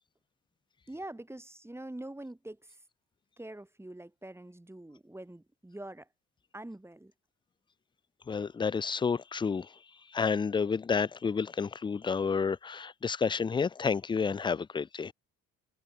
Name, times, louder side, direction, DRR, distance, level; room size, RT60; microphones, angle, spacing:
voice 1, 0.9-2.8 3.4-6.1 6.5-7.1, right 1 dB, 10° right, 2.4 m, -44 dB
voice 2, 8.3-9.7 10.1-15.1, left 5 dB, 15° left, 0.3 m, -30 dB
cardioid pair, 90°, 30 cm